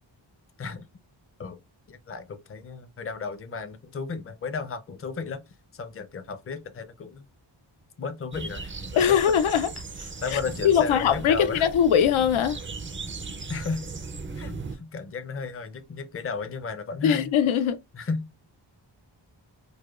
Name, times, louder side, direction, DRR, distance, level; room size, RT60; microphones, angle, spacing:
voice 1, 0.6-0.9 1.4-1.6 1.9-5.4 5.7-7.3 8.0-9.0 10.0-11.7 13.5-13.9 14.3-17.3 17.9-18.3, left 4 dB, 30° left, 0.5 m, -34 dB
sound 1, 8.3-14.8, right 3 dB, 25° right, 0.4 m, -37 dB
voice 2, 9.0-9.7 10.3-12.6 17.0-17.8, left 8 dB, 85° left, 0.5 m, -21 dB
4.9 x 2.1 x 2.3 m
wide cardioid pair, 135°, 47 cm